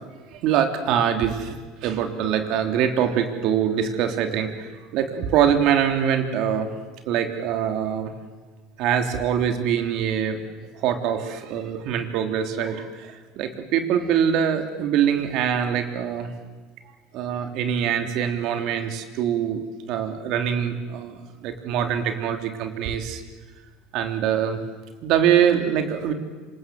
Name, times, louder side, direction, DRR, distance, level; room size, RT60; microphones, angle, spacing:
voice 1, 0.3-1.6 1.8-6.7 7.1-8.1 8.8-10.4 10.7-16.3 17.1-19.6 19.9-23.2 23.9-24.6 25.0-26.1, right 9 dB, 60° right, 6 dB, 3.3 m, -24 dB
27.0 x 26.0 x 7.8 m, 1.3 s
supercardioid pair, 130°, 0 cm